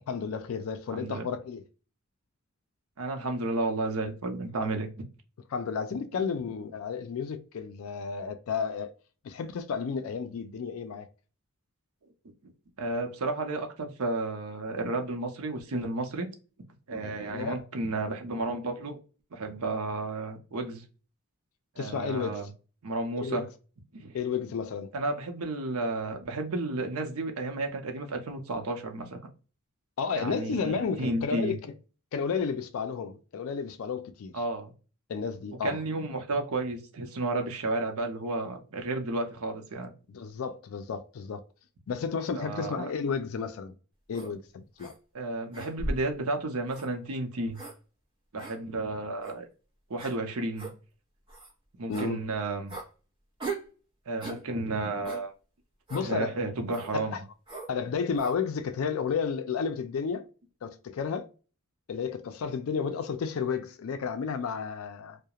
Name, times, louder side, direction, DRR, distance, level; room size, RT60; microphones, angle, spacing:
voice 1, 0.1-1.6 4.6-4.7 5.5-8.9 9.2-11.1 17.0-17.6 21.8-22.4 23.2-23.4 24.1-24.9 30.0-31.7 32.1-34.3 35.1-35.8 40.1-41.4 41.9-43.7 44.1-44.9 51.9-52.2 55.9-56.4 56.9-57.2 57.7-60.2 60.6-61.3 61.9-65.2, left 6 dB, 70° left, 0.4 m, -32 dB
voice 2, 0.9-1.2 3.0-4.9 5.9-6.0 12.8-16.3 16.9-19.0 19.3-20.8 21.8-22.5 22.8-23.4 23.9-24.1 24.9-29.2 30.2-31.6 34.3-34.7 35.6-39.9 42.3-42.9 45.1-47.6 48.3-49.4 49.9-50.7 51.8-52.7 54.1-55.3 56.0-57.2, right 2 dB, 85° right, 0.6 m, -32 dB
sound 1, 44.1-44.3 44.8-44.9 45.5-46.1 46.7-46.9 47.5-47.8 48.4-48.5 49.2-49.4 50.0-50.1 50.6-50.7 51.3-51.5 51.9-52.1 52.7-52.9 53.4-53.7 54.2-54.4 55.0-55.2 55.9-56.1 56.7-56.9 57.5-57.7 58.2-58.4, right 2 dB, 25° right, 0.8 m, -37 dB
2.3 x 2.1 x 2.7 m
head